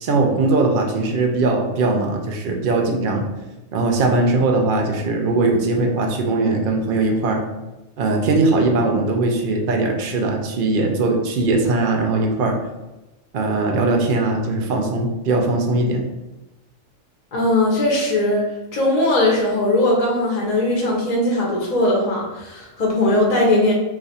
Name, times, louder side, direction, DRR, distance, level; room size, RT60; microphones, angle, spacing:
voice 1, 0.0-3.3 3.7-7.4 8.0-12.6 13.3-16.0, right 2 dB, 65° right, 2 dB, 0.5 m, -20 dB
voice 2, 17.3-23.7, left 1 dB, 40° left, -3 dB, 0.7 m, -19 dB
2.5 x 2.4 x 4.0 m, 1.0 s
omnidirectional pair, 1.4 m